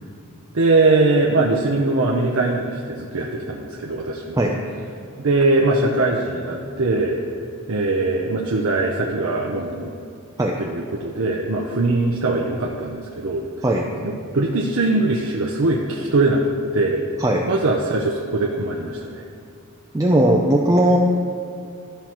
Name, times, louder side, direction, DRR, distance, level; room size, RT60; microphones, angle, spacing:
voice 1, 0.5-4.4 5.2-7.2 7.7-9.9 10.6-13.4 14.0-17.0 17.5-19.2, right 2 dB, 60° right, -1 dB, 0.6 m, -21 dB
voice 2, 19.9-21.0, right 1 dB, 15° right, -1 dB, 0.4 m, -18 dB
13.0 x 5.7 x 3.0 m, 2.5 s
head